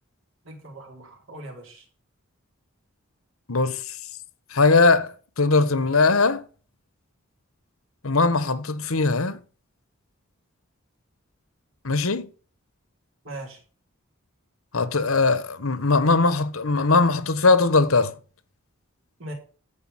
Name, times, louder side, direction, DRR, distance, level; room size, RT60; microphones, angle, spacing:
voice 1, 0.4-1.8 13.2-13.6 19.2-19.3, right 1 dB, 65° right, 4.0 m, -39 dB
voice 2, 3.5-4.0 4.5-6.4 8.0-9.4 11.8-12.3 14.7-18.1, left 3 dB, 80° left, 1.2 m, -20 dB
13.5 x 5.2 x 7.2 m
head